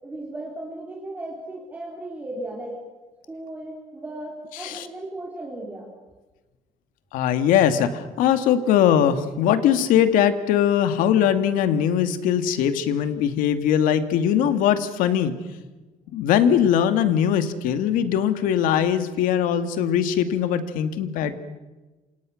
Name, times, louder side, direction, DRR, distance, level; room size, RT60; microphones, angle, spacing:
voice 1, 0.0-2.8 3.2-5.9, right 1 dB, 10° right, -1 dB, 4.0 m, -36 dB
voice 2, 4.5-4.9 7.1-15.3 16.1-21.4, left 9 dB, 80° left, 10 dB, 2.2 m, -21 dB
28.5 x 27.0 x 6.5 m, 1.2 s
cardioid pair, 175°, 14 cm